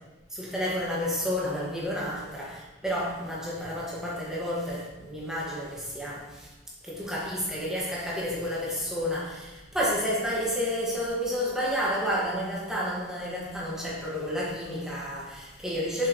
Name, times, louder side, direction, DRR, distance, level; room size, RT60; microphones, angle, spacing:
voice 1, 0.3-6.5 6.8-16.1, equal, 5° right, -6 dB, 1.4 m, -30 dB
6.9 x 6.2 x 2.9 m, 1.1 s
head